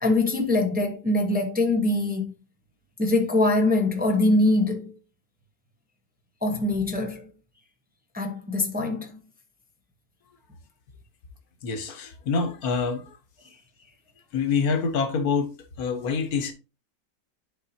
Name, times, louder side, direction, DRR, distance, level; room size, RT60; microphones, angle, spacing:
voice 1, 0.0-2.3 3.0-4.9 6.4-7.3 8.1-9.2, left 2 dB, 10° right, 0.8 m, -23 dB
voice 2, 11.6-13.0 14.3-16.5, left 5 dB, 75° left, 1.6 m, -26 dB
10.5 x 4.1 x 2.8 m
omnidirectional pair, 1.6 m